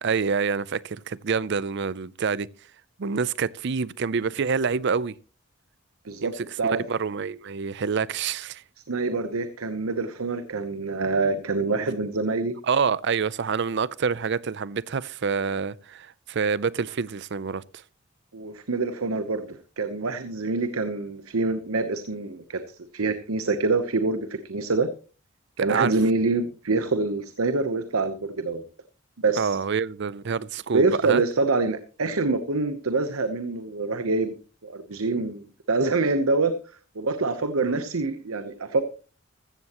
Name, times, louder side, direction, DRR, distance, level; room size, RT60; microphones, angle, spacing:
voice 1, 0.0-2.5 3.0-5.1 6.2-8.6 12.7-17.6 25.7-25.9 29.4-31.2 37.6-37.8, right 5 dB, 55° right, 0.5 m, -27 dB
voice 2, 6.0-6.8 8.9-12.5 18.3-24.9 25.6-28.6 29.2-29.6 30.7-34.3 34.6-36.5 36.9-38.8, right 3 dB, 85° right, 0.9 m, -26 dB
14.5 x 14.5 x 3.0 m
head